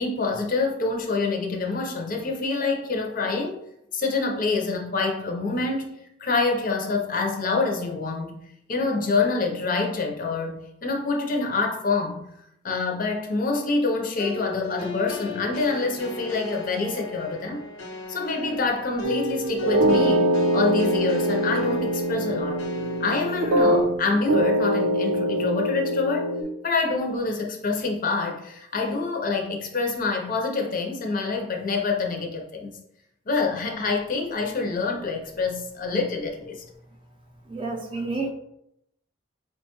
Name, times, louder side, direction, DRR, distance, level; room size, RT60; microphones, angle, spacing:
voice 1, 0.0-3.6 3.9-5.9 6.2-8.3 8.7-12.2 12.6-17.6 18.1-22.6 23.0-26.3 26.6-32.8 33.3-36.6, left 3 dB, 45° left, 1 dB, 0.6 m, -26 dB
sound 1, 14.2-23.8, left 2 dB, 90° left, 0.8 m, -37 dB
sound 2, 19.0-24.0 24.3-26.4, right 1 dB, 85° right, 0.5 m, -23 dB
voice 2, 37.5-38.3, right 3 dB, 25° right, 0 dB, 0.5 m, -29 dB
4.5 x 2.2 x 2.9 m, 0.78 s
head